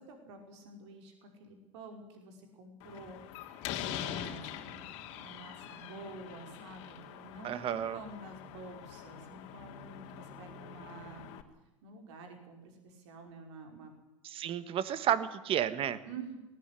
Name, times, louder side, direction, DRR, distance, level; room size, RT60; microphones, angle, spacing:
voice 1, 0.0-11.3 11.8-13.9 16.0-16.4, right 3 dB, 60° right, 4 dB, 5.5 m, -49 dB
Slam, 2.8-11.4, left 10 dB, 50° left, 2.8 m, -44 dB
voice 2, 7.4-8.0 14.2-16.0, right 10 dB, 35° right, 14 dB, 1.6 m, -31 dB
19.5 x 19.0 x 9.9 m, 1.0 s
figure-of-eight pair, 90°, 16 cm